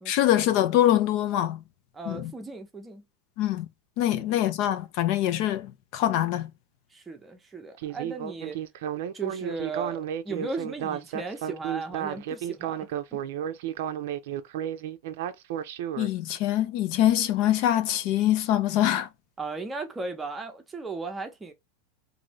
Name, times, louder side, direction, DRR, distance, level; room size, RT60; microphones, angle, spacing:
voice 1, 0.1-1.6 2.1-2.3 3.4-3.7 4.0-5.7 5.9-6.5 16.0-19.1, left 12 dB, 50° left, 0.4 m, -24 dB
voice 2, 1.9-3.0 4.1-4.5 6.9-8.6 9.1-13.2 19.4-21.5, right 3 dB, 10° right, 0.7 m, -36 dB
Speech synthesizer, 7.8-16.1, right 10 dB, 70° right, 0.5 m, -32 dB
2.6 x 2.6 x 3.0 m
supercardioid pair, 145°, 0 cm